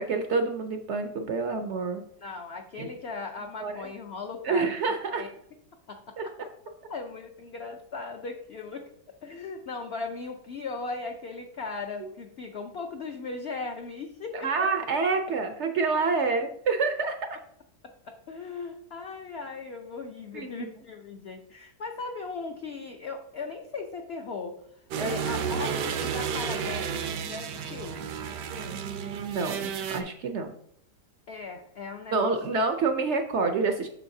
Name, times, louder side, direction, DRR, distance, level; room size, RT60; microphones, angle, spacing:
voice 1, 0.0-2.0 2.8-2.9 3.6-3.9 4.4-5.2 6.2-6.3 14.3-17.3 20.3-20.7 25.0-25.4 28.6-30.5 32.1-33.9, right 4 dB, 70° right, 6 dB, 0.6 m, -28 dB
voice 2, 2.2-4.7 5.1-5.3 5.9-6.3 6.9-8.8 9.2-14.7 17.8-24.6 25.0-28.0 31.3-32.6, left 4 dB, 65° left, 3 dB, 0.6 m, -38 dB
sound 1, 24.9-30.0, right 6 dB, 85° right, 1.3 m, -32 dB
7.6 x 6.3 x 2.7 m, 0.70 s
omnidirectional pair, 1.8 m